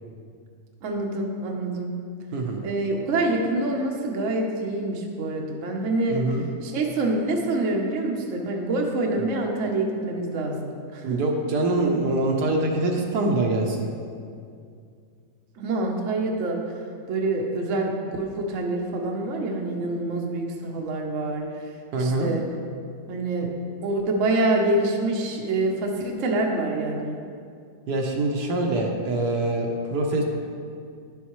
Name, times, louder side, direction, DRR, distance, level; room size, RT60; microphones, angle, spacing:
voice 1, 0.8-1.9 2.6-6.2 6.6-11.0 15.6-16.6 17.1-21.5 22.0-22.4 23.1-23.5 23.8-27.2, right 2 dB, 55° right, 1 dB, 1.0 m, -26 dB
voice 2, 2.3-2.6 6.1-6.5 11.0-13.9 21.9-22.3 27.9-30.2, right 2 dB, 70° right, 1 dB, 1.3 m, -24 dB
10.5 x 7.2 x 3.1 m, 2.3 s
omnidirectional pair, 1.9 m